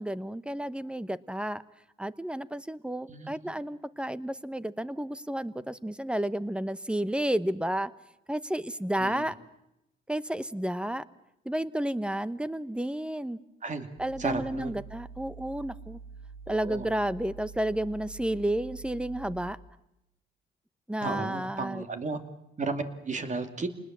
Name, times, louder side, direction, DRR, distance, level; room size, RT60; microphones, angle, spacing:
voice 1, 0.0-1.6 2.0-7.9 8.3-9.3 10.1-11.0 11.4-13.4 14.0-16.0 16.5-19.6 20.9-21.8, right 1 dB, 5° right, 15 dB, 1.0 m, -31 dB
sound 1, 14.0-19.5, right 5 dB, 85° right, 7.7 m, -46 dB
voice 2, 14.2-14.7 16.5-16.9 21.0-22.2 22.6-23.7, right 3 dB, 40° right, 7 dB, 2.6 m, -34 dB
28.0 x 20.0 x 7.5 m, 0.84 s
cardioid pair, 90°, 20 cm